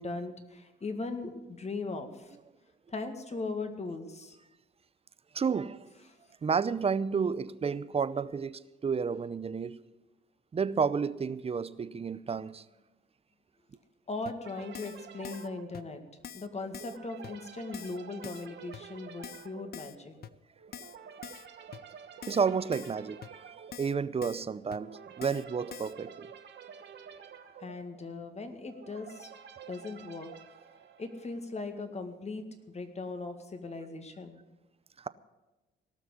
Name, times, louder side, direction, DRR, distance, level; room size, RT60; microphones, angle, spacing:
voice 1, 0.0-2.4 2.9-4.4 14.1-16.0 16.3-20.1 27.6-29.3 29.7-30.3 31.0-34.4, left 3 dB, 35° left, 2.0 m, -39 dB
voice 2, 5.3-5.9 6.4-9.8 10.5-12.6 22.3-26.3 35.0-35.1, right 6 dB, 30° right, 0.6 m, -31 dB
Keyboard (musical), 14.3-14.4 14.7-15.0 15.2-15.5 15.7-15.8 16.2-16.5 16.7-17.0 17.2-17.3 17.7-18.0 18.2-18.5 18.7-18.8 19.2-19.5 19.7-20.0 20.2-20.3 20.7-21.0 21.2-21.5 21.7-21.8 22.2-22.5 22.7-23.0 23.2-23.3 23.7-23.9 24.2-24.4 24.7-24.8 25.2-25.4 25.7-25.9, left 9 dB, 50° left, 0.7 m, -45 dB
sound 1, 14.4-31.6, right 7 dB, 60° right, 1.4 m, -50 dB
18.0 x 6.2 x 9.9 m
cardioid pair, 90°, 20 cm